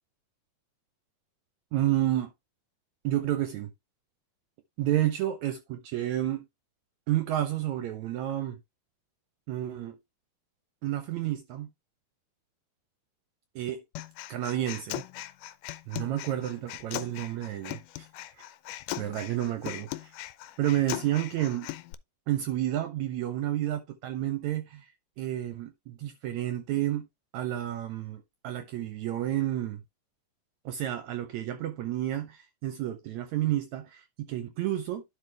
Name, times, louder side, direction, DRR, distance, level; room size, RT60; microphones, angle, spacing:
voice 1, 1.7-2.3 3.0-3.7 4.8-6.5 7.1-8.6 9.5-10.0 10.8-11.7 13.6-13.8 14.3-15.0 15.9-18.1 18.4-18.5 19.0-20.1 20.6-21.7 22.3-24.9 25.2-27.1 27.3-29.8 30.7-35.0, right 13 dB, 70° right, 2.0 m, -30 dB
Human voice, 14.0-21.9, left 16 dB, 85° left, 2.2 m, -39 dB
11.5 x 4.5 x 3.4 m
omnidirectional pair, 3.6 m